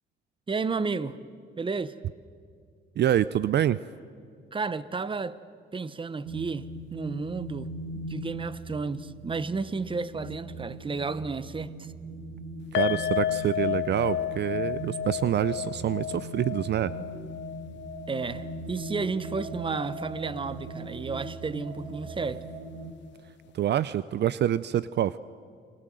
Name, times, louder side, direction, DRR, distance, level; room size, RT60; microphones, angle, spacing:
voice 1, 0.5-1.2 1.6-2.0 4.5-5.4 5.7-7.7 7.9-11.9 17.1-17.3 18.1-22.4, right 4 dB, 25° right, 1.0 m, -32 dB
voice 2, 3.0-3.8 12.7-16.9 23.5-25.2, right 11 dB, 60° right, 0.6 m, -26 dB
sound 1, 6.2-22.9, right 2 dB, 85° right, 2.1 m, -40 dB
sound 2, 12.7-20.0 20.2-20.4 20.8-20.9, left 10 dB, 65° left, 0.6 m, -32 dB
29.5 x 22.0 x 7.8 m
cardioid pair, 90°, 20 cm